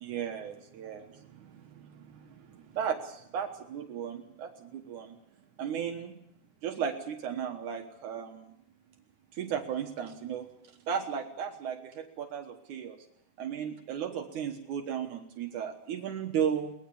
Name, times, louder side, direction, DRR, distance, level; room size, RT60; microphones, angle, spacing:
voice 1, 0.0-5.2 5.6-6.2 6.6-8.5 9.3-10.5 10.9-13.0 13.4-16.7, right 8 dB, 75° right, 4 dB, 2.7 m, -35 dB
23.0 x 19.5 x 7.1 m, 0.76 s
omnidirectional pair, 3.6 m